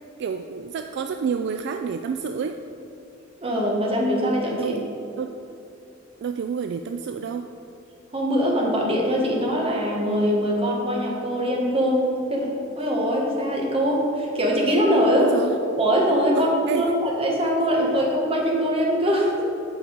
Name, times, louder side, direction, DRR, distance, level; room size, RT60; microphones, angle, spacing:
voice 1, 0.2-2.6 4.5-4.8 5.2-5.3 6.2-7.5 15.2-15.6 16.3-16.9, right 6 dB, 60° right, 6 dB, 0.3 m, -29 dB
voice 2, 3.4-4.7 8.1-12.5 12.8-15.3 15.8-19.4, equal, 30° right, -2 dB, 1.3 m, -22 dB
8.6 x 4.8 x 5.1 m, 2.8 s
head